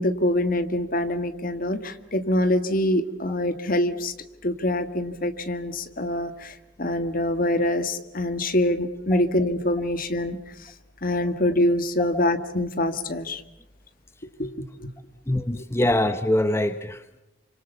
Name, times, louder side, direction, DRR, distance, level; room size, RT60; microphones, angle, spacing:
voice 1, 0.0-4.1 4.4-10.7 11.0-13.4 14.4-14.9 15.5-15.6, left 1 dB, 50° left, 10 dB, 1.7 m, -25 dB
voice 2, 15.3-17.2, left 1 dB, 15° left, 10 dB, 0.9 m, -24 dB
29.0 x 26.0 x 7.0 m, 0.87 s
head